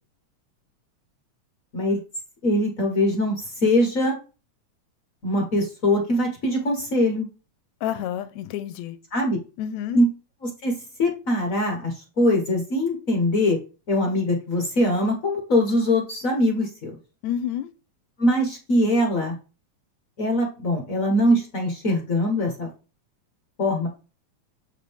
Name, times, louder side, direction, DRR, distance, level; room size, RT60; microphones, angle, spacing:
voice 1, 2.4-4.2 5.2-7.3 9.1-9.4 9.9-10.1 10.4-10.7 11.0-13.6 13.9-16.9 18.2-19.4 20.2-22.7 23.6-23.9, left 1 dB, 55° left, 0.9 m, -22 dB
voice 2, 7.8-9.0 9.6-10.0 17.2-17.7, left 10 dB, 80° left, 1.8 m, -29 dB
7.9 x 5.0 x 3.5 m
omnidirectional pair, 3.3 m